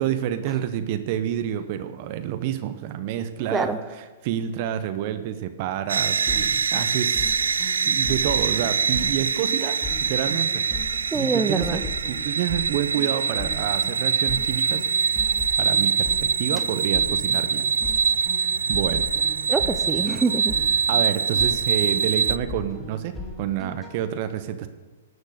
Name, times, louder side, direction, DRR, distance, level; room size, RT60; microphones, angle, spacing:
voice 1, 0.0-3.7 4.2-7.4 7.8-11.8 12.1-14.9 15.6-17.7 18.2-19.1 20.9-24.7, right 10 dB, 50° right, 10 dB, 0.8 m, -28 dB
voice 2, 3.5-3.9 11.1-11.9 19.5-20.6, right 4 dB, 10° right, 11 dB, 0.6 m, -25 dB
sound 1, 5.9-22.4, right 6 dB, 80° right, 0.4 m, -24 dB
sound 2, 6.3-23.9, left 3 dB, 10° left, 3.3 m, -38 dB
11.5 x 6.3 x 6.6 m, 1.3 s
hypercardioid pair, 120°, 0 cm